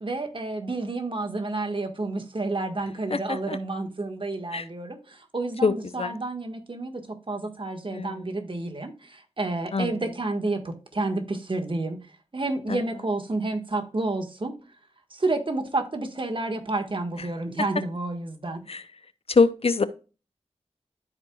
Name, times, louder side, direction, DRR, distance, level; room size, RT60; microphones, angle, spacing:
voice 1, 0.0-12.0 12.3-14.6 15.1-18.6, right 2 dB, 45° right, 1.6 m, -30 dB
voice 2, 3.1-3.6 4.5-4.7 5.6-6.1 7.9-8.2 9.7-9.9 12.7-12.8 18.7-18.8 19.3-19.8, left 4 dB, 55° left, 0.6 m, -24 dB
13.0 x 4.6 x 2.3 m
cardioid pair, 50°, 12 cm